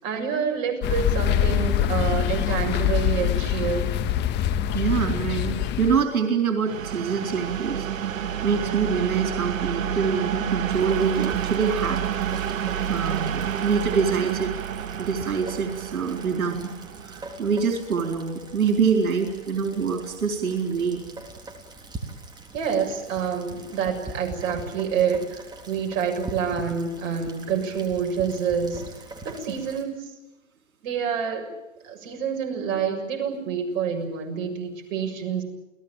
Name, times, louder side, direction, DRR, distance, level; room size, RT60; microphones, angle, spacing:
voice 1, 0.0-3.9 22.5-28.8 29.2-30.0 30.8-31.4 31.8-35.4, right 7 dB, 45° right, 2 dB, 7.1 m, -27 dB
sound 1, 0.8-6.0, left 10 dB, 25° left, 1.7 m, -24 dB
voice 2, 4.7-12.0 12.9-14.5 15.0-16.7 17.0-21.0, right 6 dB, 85° right, 4 dB, 4.3 m, -25 dB
sound 2, 6.6-18.3, right 9 dB, 70° right, 1.8 m, -29 dB
Rain, 10.7-29.9, right 2 dB, 10° right, 3.5 m, -42 dB
29.0 x 18.5 x 9.1 m, 0.97 s
hypercardioid pair, 135°, 41 cm